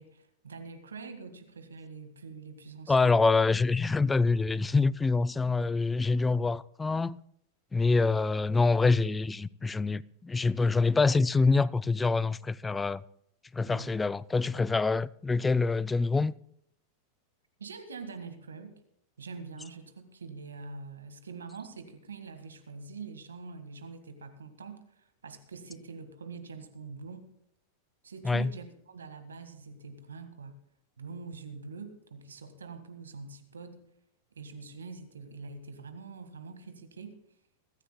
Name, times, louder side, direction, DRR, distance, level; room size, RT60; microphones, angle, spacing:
voice 1, 0.0-3.1 13.6-14.0 17.6-18.7 19.2-27.3 28.0-30.6 31.0-33.8 34.4-37.1, right 4 dB, 85° right, 1.7 m, -44 dB
voice 2, 2.9-7.2 7.7-13.0 13.5-16.3 28.2-28.5, left 3 dB, 15° left, 0.4 m, -26 dB
23.0 x 13.5 x 2.3 m
hypercardioid pair, 100°, 0 cm